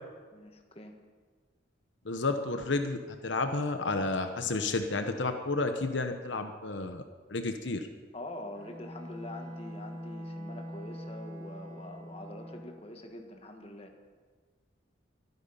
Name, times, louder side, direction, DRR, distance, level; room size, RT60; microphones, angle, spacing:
voice 1, 0.3-1.0 8.1-13.9, left 1 dB, 30° left, 4 dB, 1.5 m, -45 dB
voice 2, 2.0-3.0 3.2-7.0 7.3-7.9, left 3 dB, 75° left, 6 dB, 1.0 m, -31 dB
Bowed string instrument, 8.5-12.9, equal, 25° right, 5.6 m, -43 dB
24.0 x 9.5 x 5.6 m, 1.5 s
head